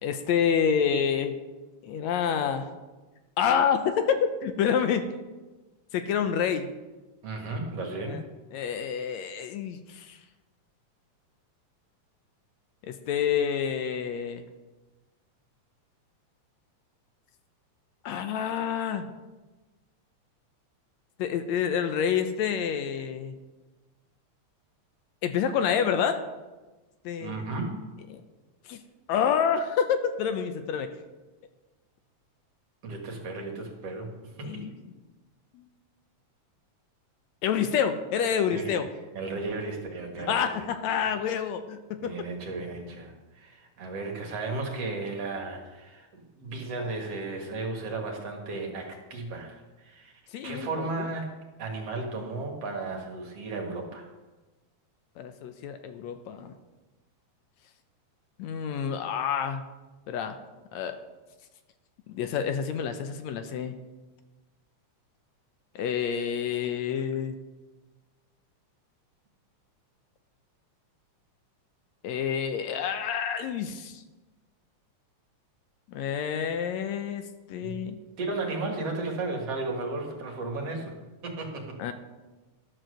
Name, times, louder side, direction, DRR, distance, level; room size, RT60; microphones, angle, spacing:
voice 1, 0.0-1.4 1.8-2.7 3.4-5.1 5.9-6.7 8.1-8.2 8.5-10.2 12.8-14.4 18.0-19.1 21.2-23.4 25.2-26.2 27.1-27.4 28.7-28.8 29.1-30.9 34.4-34.7 35.5-35.7 37.4-38.9 40.3-42.2 50.3-51.1 55.2-56.5 58.4-59.6 60.1-60.4 60.7-61.0 62.1-63.7 65.8-67.4 72.0-74.0 75.9-77.2 77.5-78.0 81.8-81.9, left 7 dB, 75° left, 8 dB, 1.9 m, -28 dB
voice 2, 7.2-8.2 27.2-27.8 32.8-34.1 34.4-34.5 38.5-38.8 39.1-40.7 42.0-50.1 50.4-51.3 51.6-54.1 77.6-77.8 78.2-80.9 81.2-81.8, right 3 dB, 55° right, 1 dB, 2.7 m, -34 dB
12.0 x 7.6 x 6.4 m, 1.2 s
omnidirectional pair, 3.3 m